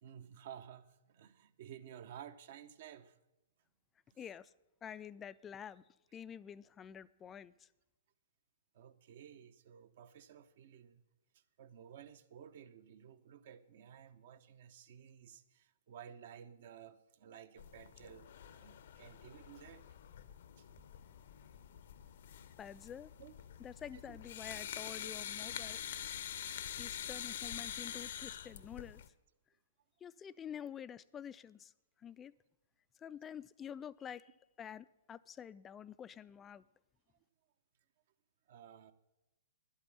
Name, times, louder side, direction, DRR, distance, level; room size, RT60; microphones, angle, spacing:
voice 1, 0.0-3.2 4.1-4.2 8.7-11.0 11.3-19.8 20.6-20.8 23.2-23.3 23.9-24.2 25.0-25.1 38.5-38.9, right 9 dB, 50° right, 0.7 m, -54 dB
voice 2, 4.2-4.5 4.8-5.8 6.1-7.7 22.6-23.1 23.6-25.8 26.8-29.0 30.0-31.7 32.0-32.3 33.0-34.3 34.6-36.6, left 8 dB, 15° left, 0.3 m, -48 dB
sound 1, 17.6-29.1, left 10 dB, 55° left, 0.6 m, -46 dB
11.5 x 8.4 x 7.2 m
figure-of-eight pair, 115°, 0 cm